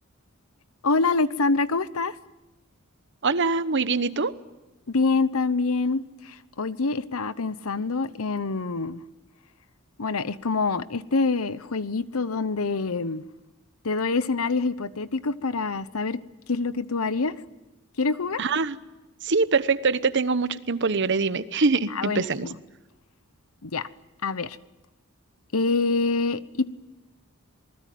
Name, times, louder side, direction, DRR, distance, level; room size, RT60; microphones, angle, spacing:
voice 1, 0.8-2.2 4.9-9.0 10.0-13.2 13.8-16.2 16.5-17.3 18.0-18.4 21.9-22.5 23.6-23.9 24.2-24.6 25.5-26.7, left 3 dB, 85° left, 15 dB, 1.0 m, -26 dB
voice 2, 3.2-4.3 18.4-18.8 19.2-22.5, right 4 dB, 55° right, 13 dB, 1.1 m, -23 dB
27.0 x 20.0 x 9.4 m, 1.1 s
head